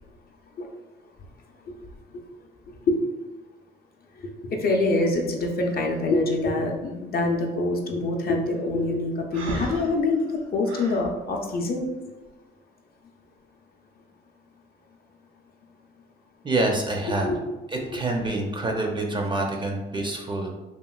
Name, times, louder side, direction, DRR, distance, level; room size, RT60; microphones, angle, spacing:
voice 1, 4.2-11.9 17.1-17.4, left 2 dB, 50° left, 2 dB, 0.5 m, -25 dB
Breathing, 9.3-11.1, right 2 dB, 85° right, 0.5 m, -34 dB
voice 2, 16.4-17.3 17.7-20.6, right 2 dB, 25° right, 1 dB, 0.4 m, -26 dB
2.9 x 2.5 x 2.3 m, 1.1 s
cardioid pair, 90°, 20 cm